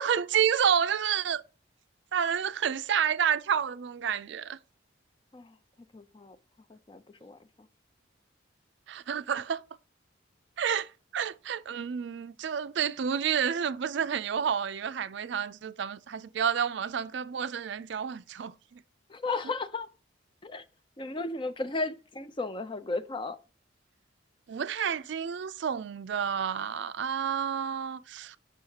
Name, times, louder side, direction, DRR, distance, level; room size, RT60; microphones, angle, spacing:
voice 1, 0.0-1.4 2.1-4.6 8.9-9.6 10.6-18.8 24.5-28.4, right 8 dB, 60° right, 0.4 m, -30 dB
voice 2, 5.9-6.4 6.7-7.4 19.1-19.9 20.4-20.6 21.0-23.4, left 3 dB, 25° left, 0.4 m, -34 dB
8.0 x 5.5 x 2.8 m
head